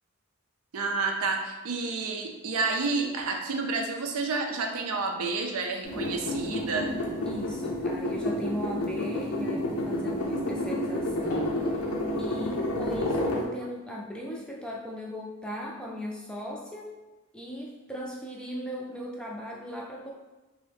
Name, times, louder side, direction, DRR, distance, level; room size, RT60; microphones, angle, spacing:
voice 1, 0.7-6.9, right 3 dB, 85° right, 3 dB, 0.5 m, -30 dB
sound 1, 5.8-13.4, left 1 dB, 85° left, 0.6 m, -30 dB
voice 2, 7.2-11.7 12.2-16.9 17.3-20.1, equal, 5° left, -3 dB, 0.3 m, -38 dB
3.0 x 2.6 x 3.4 m, 1.1 s
head